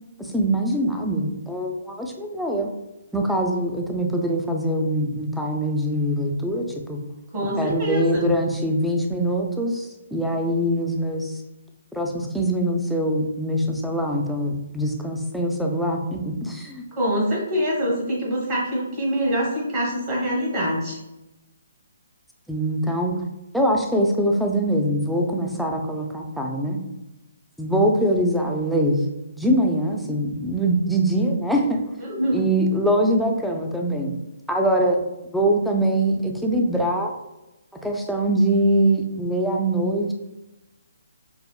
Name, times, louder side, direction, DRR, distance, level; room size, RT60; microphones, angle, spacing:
voice 1, 0.2-2.7 3.1-7.0 7.6-11.4 11.9-16.8 22.5-23.2 23.5-26.8 27.6-29.0 29.4-31.8 32.3-34.1 34.5-37.1 37.8-40.1, right 1 dB, ahead, 0 dB, 0.4 m, -23 dB
voice 2, 7.3-8.2 16.9-21.0 32.0-32.4, equal, 35° right, -4 dB, 1.1 m, -24 dB
4.9 x 2.0 x 2.2 m, 0.97 s
hypercardioid pair, 145°, 0 cm